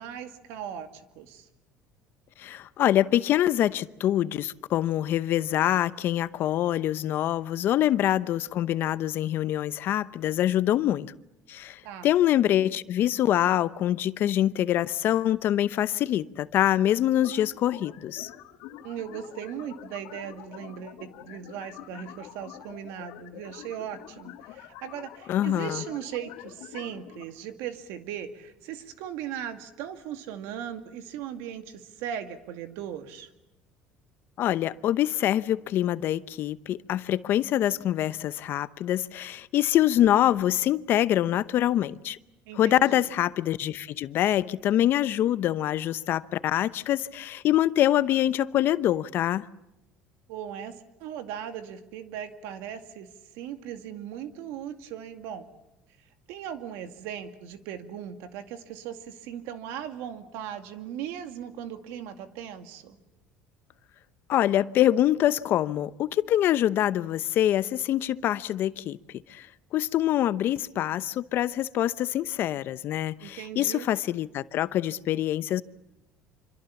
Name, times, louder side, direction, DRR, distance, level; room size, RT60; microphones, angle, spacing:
voice 1, 0.0-1.5 11.8-12.1 18.8-33.3 42.5-43.1 50.3-50.7 51.0-53.1 53.3-55.5 56.3-63.0 73.2-73.9, right 9 dB, 80° right, 2.2 m, -38 dB
voice 2, 2.4-11.1 11.5-18.3 25.3-25.8 34.4-42.2 42.5-49.5 64.3-69.0 69.3-75.6, left 12 dB, 55° left, 0.8 m, -25 dB
sound 1, 17.2-27.2, left 14 dB, 85° left, 2.3 m, -46 dB
26.5 x 25.5 x 7.2 m
supercardioid pair, 105°, 4 cm